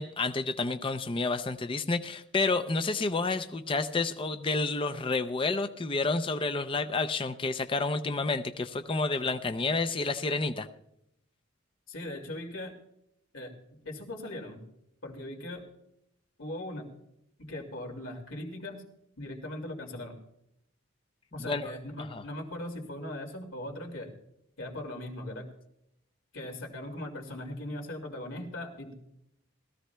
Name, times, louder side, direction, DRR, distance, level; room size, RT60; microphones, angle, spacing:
voice 1, 0.0-10.7 21.4-21.7 22.1-22.2, left 3 dB, 25° left, 9 dB, 0.5 m, -30 dB
voice 2, 11.9-12.7 13.3-13.5 13.8-14.6 15.0-15.6 16.4-16.8 17.4-18.8 19.2-20.2 21.3-24.1 24.6-25.5 26.3-28.9, left 1 dB, 80° left, 2 dB, 2.4 m, -39 dB
20.5 x 14.5 x 2.2 m, 0.79 s
head